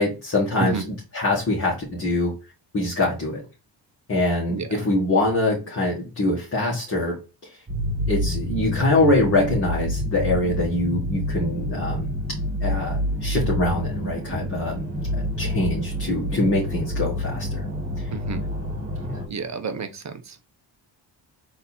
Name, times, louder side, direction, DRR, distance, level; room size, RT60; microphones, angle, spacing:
voice 1, 0.0-2.3 2.7-3.4 4.1-7.2 7.4-7.6 8.1-12.1 12.6-14.8 15.4-17.7 18.0-18.1 19.0-19.2, left 2 dB, 35° left, -5 dB, 1.8 m, -24 dB
sound 1, 7.7-19.3, equal, 20° right, 1.7 m, -28 dB
voice 2, 18.1-18.4 19.3-20.5, right 5 dB, 40° right, 8 dB, 0.7 m, -31 dB
4.1 x 2.8 x 4.2 m, 0.31 s
cardioid pair, 115°, 43 cm